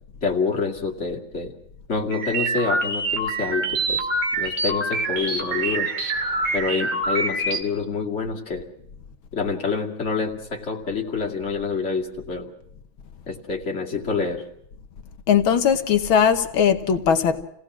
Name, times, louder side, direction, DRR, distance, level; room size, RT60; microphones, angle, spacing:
voice 1, 0.2-1.5 1.9-4.1 4.4-5.9 6.5-8.7 9.3-12.5 13.3-14.4, left 4 dB, 35° left, 0 dB, 2.6 m, -27 dB
sound 1, 2.1-7.6, right 2 dB, 75° right, 3.5 m, -25 dB
voice 2, 15.3-17.4, left 7 dB, 75° left, 7 dB, 2.0 m, -19 dB
29.0 x 17.5 x 6.2 m, 0.76 s
omnidirectional pair, 2.3 m